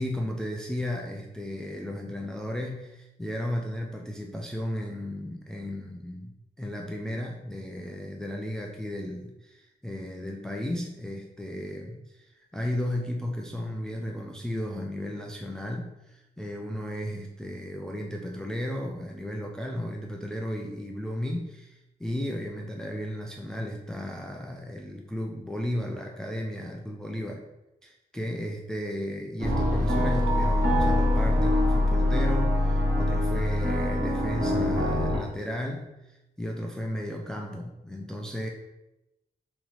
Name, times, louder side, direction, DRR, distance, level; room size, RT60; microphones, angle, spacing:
voice 1, 0.0-27.4 27.8-38.5, left 1 dB, 5° left, 0 dB, 0.3 m, -34 dB
sound 1, 29.4-35.2, left 1 dB, 70° right, 1.4 m, -24 dB
4.0 x 2.9 x 3.0 m, 0.94 s
wide cardioid pair, 145°, 15 cm